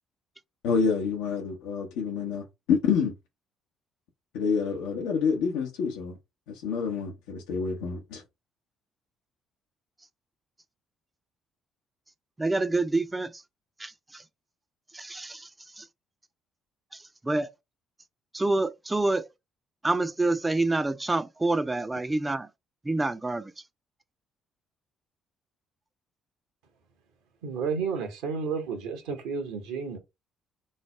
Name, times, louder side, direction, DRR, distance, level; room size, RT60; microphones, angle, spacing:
voice 1, 0.6-3.1 4.3-6.2 6.5-8.2, left 6 dB, 85° left, 0.6 m, -28 dB
voice 2, 12.4-13.3 13.8-14.2 14.9-15.5 15.8-15.9 17.2-17.5 18.3-19.3 19.8-22.5 22.9-23.5, right 2 dB, 20° right, 0.4 m, -27 dB
voice 3, 27.4-30.0, right 5 dB, 85° right, 1.0 m, -31 dB
3.2 x 2.0 x 4.2 m
supercardioid pair, 60°, 0 cm